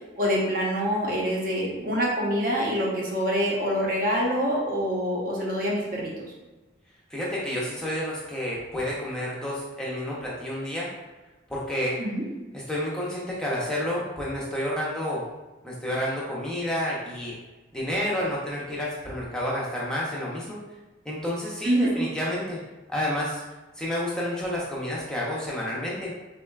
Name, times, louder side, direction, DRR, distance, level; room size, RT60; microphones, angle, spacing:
voice 1, 0.2-6.1 12.0-12.2 21.6-21.9, equal, 45° right, -4 dB, 0.7 m, -25 dB
voice 2, 7.1-10.9 11.5-12.0 12.5-15.2 15.6-17.3 17.7-20.6 21.0-22.6 22.9-23.4 23.8-26.1, left 1 dB, 5° left, -6 dB, 0.5 m, -30 dB
3.8 x 2.1 x 2.2 m, 1.1 s
head